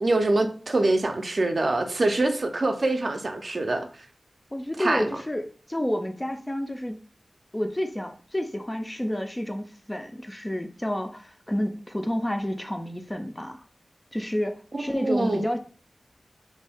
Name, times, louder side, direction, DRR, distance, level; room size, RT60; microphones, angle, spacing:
voice 1, 0.0-3.9 4.8-5.0 14.7-15.5, right 2 dB, 55° right, 0.4 m, -24 dB
voice 2, 4.5-7.0 7.5-13.6 14.1-15.6, left 1 dB, 15° left, 0.3 m, -30 dB
2.6 x 2.2 x 3.3 m
wide cardioid pair, 85°, 0 cm